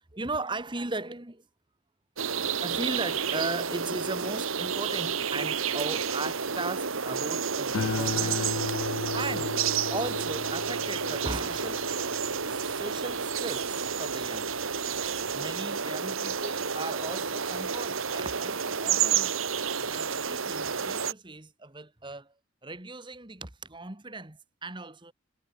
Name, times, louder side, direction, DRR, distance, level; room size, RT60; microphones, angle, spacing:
voice 1, 0.1-1.4 2.6-8.6 9.1-9.5 9.8-12.1 12.4-14.5 15.3-19.4 19.8-22.3 22.6-25.1, right 2 dB, 25° right, 1.6 m, -37 dB
sound 1, 2.2-21.1, right 6 dB, 85° right, 1.9 m, -30 dB
sound 2, 7.7-14.3 14.7-15.2, left 4 dB, 80° left, 0.6 m, -36 dB
head